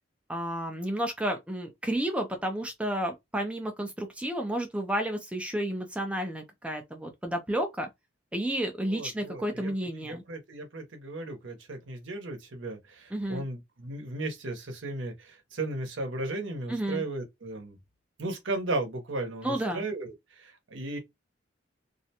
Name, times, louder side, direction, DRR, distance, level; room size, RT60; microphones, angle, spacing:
voice 1, 0.3-7.9 8.3-10.2 13.1-13.4 16.7-17.0 19.4-19.9, right 1 dB, 5° right, 0.4 m, -31 dB
voice 2, 8.9-17.8 18.2-21.0, right 2 dB, 80° right, 0.8 m, -36 dB
2.5 x 2.1 x 2.7 m
head